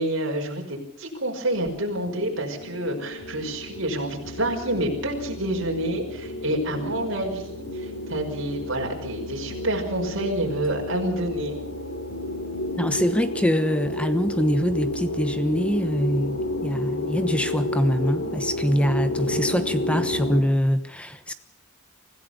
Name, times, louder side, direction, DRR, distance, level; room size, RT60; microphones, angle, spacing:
voice 1, 0.0-11.5, right 1 dB, 65° right, 1 dB, 5.4 m, -28 dB
sound 1, 1.5-20.4, left 1 dB, 70° left, 3.4 m, -31 dB
voice 2, 12.8-21.3, equal, 5° left, 10 dB, 1.1 m, -24 dB
25.0 x 16.0 x 6.8 m, 0.74 s
head